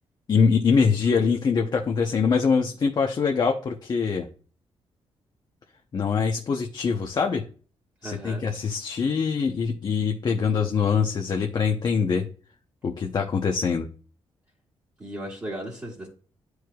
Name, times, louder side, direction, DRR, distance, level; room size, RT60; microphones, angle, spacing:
voice 1, 0.3-4.3 5.9-7.4 8.0-12.3 12.8-13.9, left 5 dB, 45° left, 2 dB, 0.7 m, -23 dB
voice 2, 8.0-8.5 15.0-16.1, right 1 dB, 25° right, -6 dB, 2.0 m, -36 dB
10.5 x 4.7 x 2.3 m, 0.40 s
cardioid pair, 120°, 10 cm